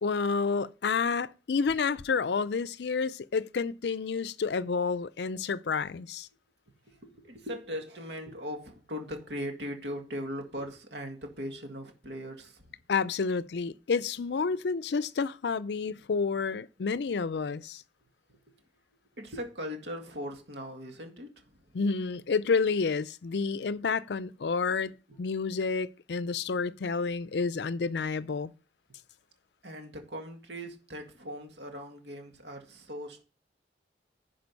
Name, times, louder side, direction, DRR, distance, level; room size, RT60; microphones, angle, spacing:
voice 1, 0.0-6.3 12.9-17.8 21.7-24.9 25.2-28.5, left 5 dB, 65° left, 0.5 m, -29 dB
voice 2, 6.9-12.8 18.3-18.4 19.1-21.7 25.1-25.2 29.6-33.2, equal, 70° right, 1.8 m, -39 dB
10.5 x 5.1 x 5.3 m
head